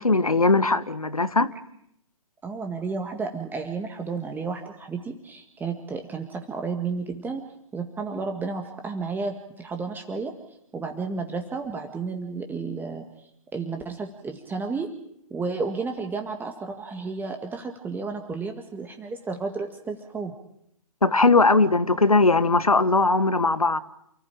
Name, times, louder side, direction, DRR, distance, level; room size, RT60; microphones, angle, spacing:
voice 1, 0.0-1.5 21.0-23.8, left 3 dB, 90° left, 1.4 m, -19 dB
voice 2, 2.4-7.4 7.7-10.3 10.7-14.9 15.3-20.3, right 4 dB, 10° right, 1.8 m, -32 dB
28.5 x 15.5 x 9.0 m
figure-of-eight pair, 125°, 18 cm